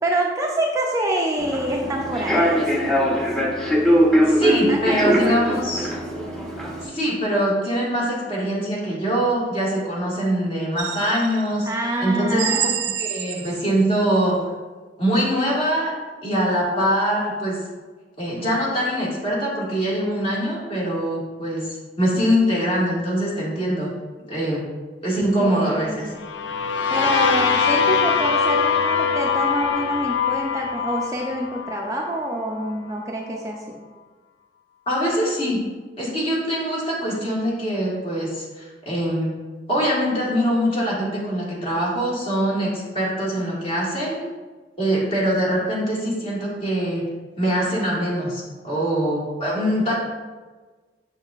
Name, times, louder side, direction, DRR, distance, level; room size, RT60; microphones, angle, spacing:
voice 1, 0.0-2.6 4.4-5.7 11.7-12.9 25.4-26.2 26.9-33.8, right 1 dB, 20° right, 0 dB, 0.5 m, -26 dB
Human voice / Subway metro underground, 1.4-6.8, equal, 5° left, 0.9 m, -21 dB
voice 2, 4.3-5.9 6.8-11.7 12.0-12.7 13.0-14.4 15.0-15.9 16.2-17.6 18.2-23.9 24.3-24.7 25.0-26.1 34.9-35.6 36.0-39.3 39.7-44.2 44.8-47.0 47.4-49.9, equal, 35° left, -5 dB, 1.9 m, -23 dB
sound 1, 10.8-11.6 12.4-13.8, right 9 dB, 70° right, 0.5 m, -28 dB
sound 2, 26.2-32.0, left 6 dB, 80° left, 0.4 m, -22 dB
6.4 x 6.4 x 2.4 m, 1.3 s
head